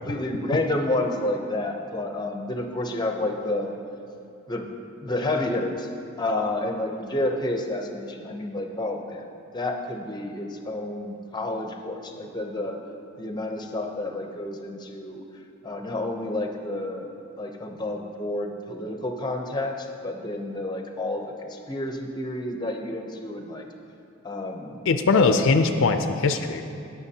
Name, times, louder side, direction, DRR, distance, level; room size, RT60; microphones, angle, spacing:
voice 1, 0.0-3.8 4.5-4.7 5.0-5.9 6.2-9.2 9.5-12.8 13.2-15.2 15.6-23.6 24.2-24.8 25.1-25.5, left 1 dB, 20° left, 4 dB, 0.6 m, -30 dB
voice 2, 24.9-26.6, left 4 dB, 65° left, 8 dB, 0.4 m, -20 dB
17.0 x 6.0 x 2.8 m, 2.6 s
head